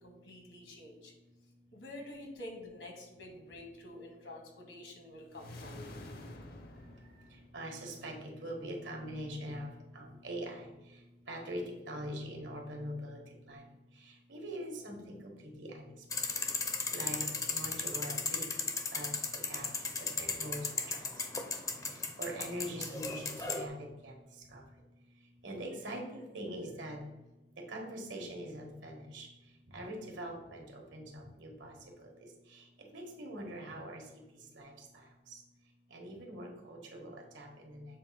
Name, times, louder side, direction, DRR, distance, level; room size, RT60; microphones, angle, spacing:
voice 1, 0.0-1.1 1.7-5.8, left 1 dB, 75° left, 1 dB, 1.7 m, -48 dB
sound 1, 5.3-7.9, left 1 dB, 55° left, 0.8 m, -48 dB
voice 2, 7.5-9.7 9.9-10.7 11.3-13.2 13.5-13.6 14.3-15.9 16.9-17.2 17.5-18.4 18.9-19.1 19.5-19.7 20.0-20.6 20.9-21.1 22.2-24.1 24.5-24.6 25.4-27.0 27.7-29.3 29.7-31.7 32.0-32.1 32.9-34.0 34.5-34.7 35.9-37.9, right 1 dB, 85° right, 1 dB, 1.5 m, -42 dB
sound 2, 16.1-23.7, left 4 dB, 20° left, 0.5 m, -36 dB
7.3 x 2.6 x 5.6 m, 1.0 s
head